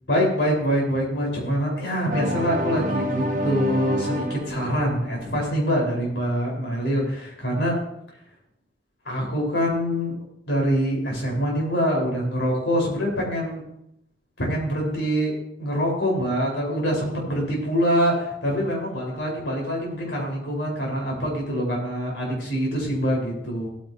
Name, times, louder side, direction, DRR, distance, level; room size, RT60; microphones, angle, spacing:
voice 1, 0.1-7.8 9.0-10.2 10.5-13.6 14.4-15.3 15.6-23.7, equal, 80° left, -2 dB, 4.3 m, -25 dB
sound 1, 2.1-5.9, equal, 45° right, 1.0 m, -28 dB
16.5 x 9.1 x 2.8 m, 0.77 s
head